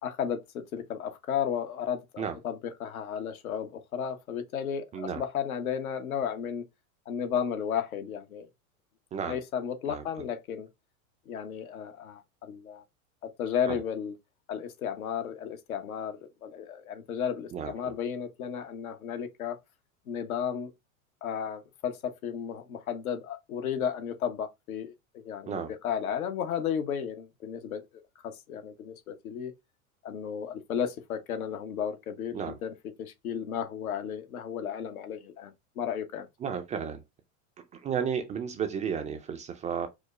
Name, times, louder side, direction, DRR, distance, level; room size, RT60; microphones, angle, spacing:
voice 1, 0.0-6.6 7.1-8.5 9.3-10.7 11.3-12.8 13.2-14.1 14.5-19.6 20.1-20.7 21.2-27.8 28.2-29.5 30.0-36.3, left 8 dB, 80° left, 0.9 m, -34 dB
voice 2, 17.5-17.9 25.5-25.7 32.3-32.6 36.4-37.0 37.7-39.9, right 7 dB, 20° right, 0.3 m, -33 dB
4.8 x 2.0 x 2.3 m
hypercardioid pair, 100°, 42 cm